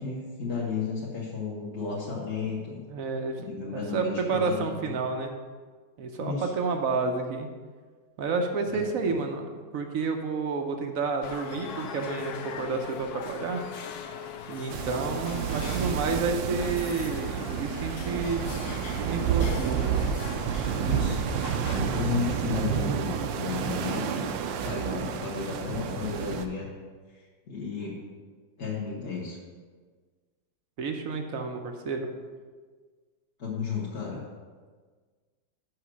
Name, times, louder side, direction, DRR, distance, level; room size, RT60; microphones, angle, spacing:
voice 1, 0.0-2.8 3.4-4.6 6.2-6.5 8.7-9.2 20.8-21.2 21.7-24.3 24.6-26.7 27.1-28.0 28.6-29.4 33.4-34.2, left 5 dB, 40° left, -6 dB, 1.2 m, -33 dB
voice 2, 2.9-3.4 3.7-5.3 6.0-7.5 8.2-13.6 14.5-18.4 19.0-19.9 30.8-32.1, right 4 dB, 60° right, 4 dB, 0.9 m, -30 dB
sound 1, 11.2-21.8, left 7 dB, 65° left, 1.0 m, -41 dB
sound 2, 14.7-26.5, right 7 dB, 80° right, 1.3 m, -30 dB
6.2 x 5.7 x 6.1 m, 1.5 s
omnidirectional pair, 2.1 m